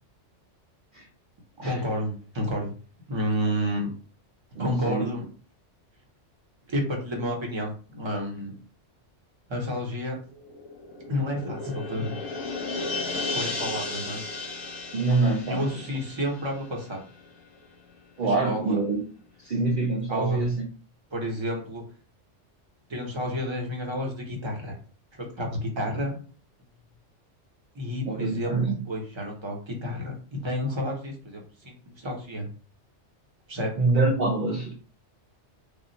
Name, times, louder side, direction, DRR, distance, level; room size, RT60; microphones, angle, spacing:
voice 1, 1.6-2.7 3.1-3.9 4.6-5.3 6.7-8.5 9.5-10.2 11.1-12.2 13.3-14.4 15.5-17.0 18.3-18.8 20.1-20.4 21.1-21.8 22.9-24.8 25.1-26.2 27.7-28.5 28.9-32.5 33.5-33.7, equal, 25° right, 0.9 m, -30 dB
voice 2, 4.5-5.1 14.9-15.7 18.2-19.0 19.4-20.6 28.1-28.8 33.8-34.8, right 3 dB, 50° right, 0.7 m, -25 dB
sound 1, 10.3-17.3 17.6-17.7, left 3 dB, 25° left, 0.9 m, -35 dB
3.5 x 2.3 x 4.0 m
omnidirectional pair, 1.3 m